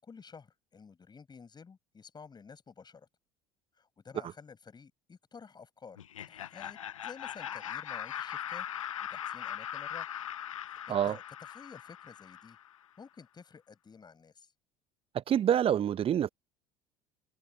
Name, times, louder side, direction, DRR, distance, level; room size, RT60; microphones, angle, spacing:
voice 1, 0.0-3.1 3.8-6.0 6.3-8.7 9.0-10.1 10.7-11.2 11.5-12.6 13.0-14.5, left 5 dB, 25° left, 6.0 m, -52 dB
Laughter, 6.0-12.8, left 10 dB, 75° left, 0.7 m, -40 dB
voice 2, 15.1-16.3, right 10 dB, 35° right, 1.0 m, -27 dB
figure-of-eight pair, 65°, 17 cm